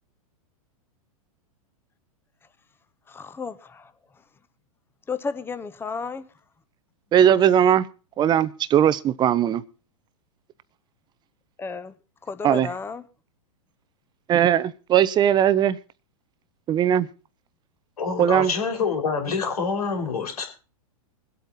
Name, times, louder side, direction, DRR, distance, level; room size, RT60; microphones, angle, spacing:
voice 1, 3.1-3.8 5.1-6.3 7.2-7.3 11.6-11.9 12.3-13.0, left 5 dB, 10° left, 1.0 m, -32 dB
voice 2, 7.1-7.9 8.2-9.6 12.4-12.7 14.3-15.8 16.7-17.1 18.2-18.5, right 10 dB, 25° right, 0.7 m, -19 dB
voice 3, 18.0-20.4, left 5 dB, 80° left, 4.2 m, -26 dB
22.0 x 8.2 x 4.1 m
hypercardioid pair, 115°, 19 cm